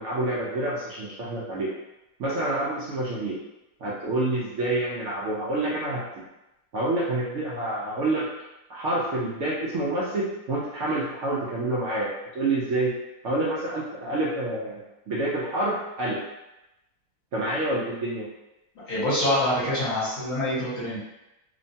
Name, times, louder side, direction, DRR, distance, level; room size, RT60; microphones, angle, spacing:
voice 1, 0.0-1.7 2.2-3.4 3.8-6.0 6.7-8.3 8.7-12.9 13.2-14.8 15.1-16.2 17.3-18.3, right 2 dB, 70° right, -6 dB, 0.7 m, -27 dB
voice 2, 18.9-21.0, left 1 dB, 60° left, -9 dB, 1.3 m, -25 dB
2.9 x 2.1 x 2.6 m, 0.95 s
omnidirectional pair, 1.8 m